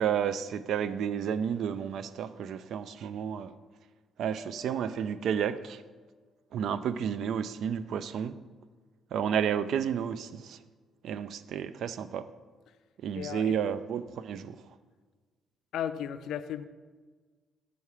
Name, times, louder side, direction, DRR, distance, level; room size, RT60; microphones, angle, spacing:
voice 1, 0.0-3.5 4.2-5.8 6.5-8.4 9.1-10.6 11.0-12.3 13.0-14.7, right 8 dB, 75° right, 13 dB, 0.4 m, -31 dB
Mallet percussion, 4.4-6.4, left 4 dB, 15° left, 0.5 m, -54 dB
voice 2, 13.1-13.6 15.7-16.6, left 9 dB, 80° left, 12 dB, 0.4 m, -35 dB
7.0 x 4.6 x 4.8 m, 1.4 s
cardioid pair, 90°, 0 cm